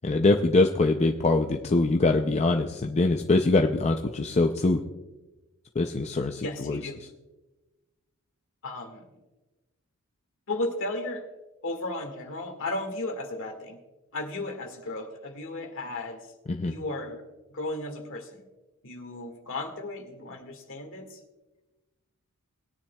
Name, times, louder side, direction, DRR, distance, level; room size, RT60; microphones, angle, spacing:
voice 1, 0.0-4.8 5.8-7.1 16.5-16.7, left 2 dB, 30° left, 4 dB, 0.5 m, -23 dB
voice 2, 6.4-7.0 8.6-9.0 10.5-11.2 11.6-13.8 14.1-16.2 16.7-17.2 17.5-18.4 18.8-21.2, left 2 dB, 60° left, 4 dB, 1.8 m, -34 dB
19.5 x 10.0 x 2.3 m, 1.1 s
head